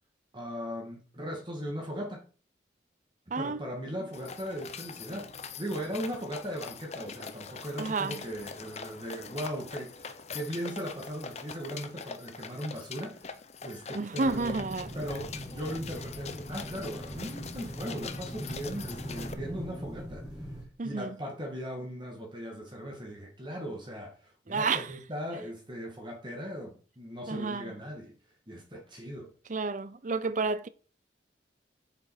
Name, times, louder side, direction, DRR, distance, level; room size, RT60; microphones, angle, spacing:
voice 1, 0.3-2.2 3.3-5.3 5.6-14.7 14.9-28.1 28.5-29.3, equal, 25° right, 1.9 m, -38 dB
sound 1, 4.1-19.3, left 5 dB, 35° left, 0.8 m, -43 dB
voice 2, 7.8-8.2 13.9-14.9 20.8-21.1 24.5-24.9 27.3-27.7 29.5-30.7, right 4 dB, 45° right, 0.6 m, -30 dB
sound 2, 14.2-20.6, equal, 5° right, 2.1 m, -41 dB
7.6 x 6.8 x 4.8 m
head